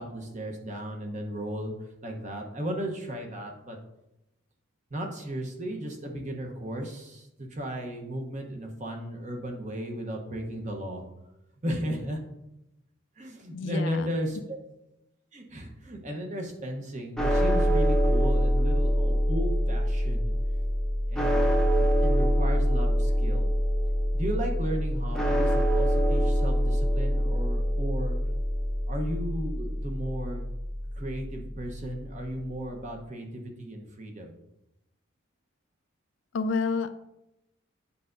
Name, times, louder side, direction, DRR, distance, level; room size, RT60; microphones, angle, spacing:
voice 1, 0.0-3.8 4.9-11.0 11.6-12.2 13.2-14.6 15.3-20.3 21.1-23.5 24.1-28.2 28.9-30.4 30.9-34.3, equal, 35° right, 2 dB, 0.9 m, -35 dB
voice 2, 13.5-14.1 36.3-36.9, left 4 dB, 65° left, 9 dB, 0.4 m, -29 dB
sound 1, 17.2-31.4, equal, 5° left, 0.6 m, -25 dB
8.3 x 5.4 x 2.6 m, 0.88 s
head